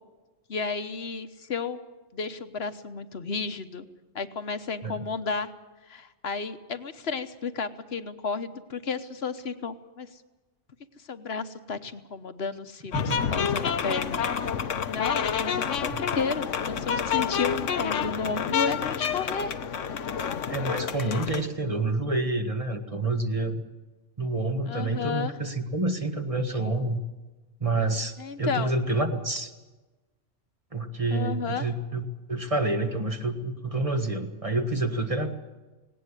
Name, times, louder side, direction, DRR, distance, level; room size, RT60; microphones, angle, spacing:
voice 1, 0.5-1.8 2.1-3.9 4.1-5.5 5.9-10.1 11.1-14.2 14.9-19.6 21.1-21.2 24.7-25.4 28.2-28.7 31.1-31.7, left 5 dB, 55° left, 10 dB, 1.3 m, -32 dB
sound 1, 12.9-21.5, left 7 dB, 75° left, 1.3 m, -28 dB
voice 2, 20.5-23.6 24.2-27.0 27.6-29.5 30.7-35.3, right 2 dB, 25° right, 6 dB, 1.6 m, -28 dB
18.5 x 18.0 x 9.9 m, 1.2 s
omnidirectional pair, 1.3 m